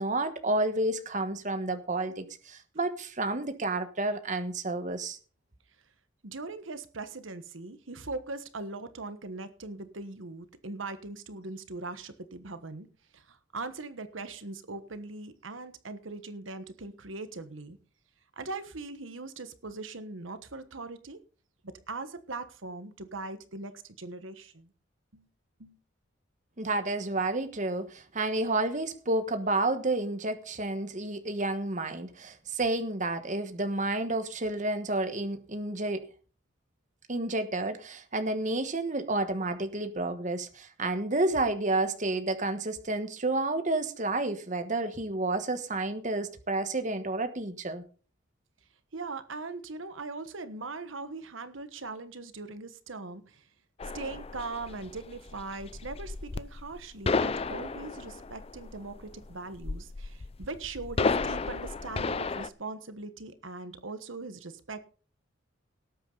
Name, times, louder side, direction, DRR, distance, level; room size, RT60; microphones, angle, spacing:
voice 1, 0.0-5.2 26.6-36.0 37.1-47.8, right 2 dB, 40° right, 1.3 m, -30 dB
voice 2, 6.2-12.9 13.1-17.8 18.4-21.2 21.9-24.7 25.1-25.3 25.6-25.8 48.9-53.5 53.9-64.8, right 3 dB, 75° right, 1.3 m, -40 dB
sound 1, 53.8-62.5, left 4 dB, 30° left, 0.5 m, -33 dB
18.5 x 8.6 x 3.9 m
head